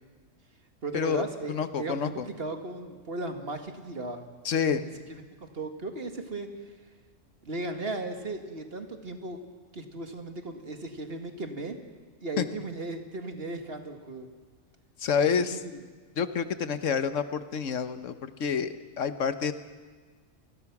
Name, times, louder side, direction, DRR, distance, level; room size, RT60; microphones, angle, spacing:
voice 1, 0.8-4.3 5.1-6.5 7.4-9.4 9.7-11.8 12.2-14.3 15.2-15.7, right 2 dB, 50° right, 5 dB, 2.1 m, -36 dB
voice 2, 1.5-2.3 4.4-4.8 12.4-12.5 15.0-15.6 16.2-19.5, left 6 dB, 75° left, 11 dB, 1.4 m, -28 dB
28.5 x 21.5 x 6.0 m, 1.5 s
omnidirectional pair, 1.3 m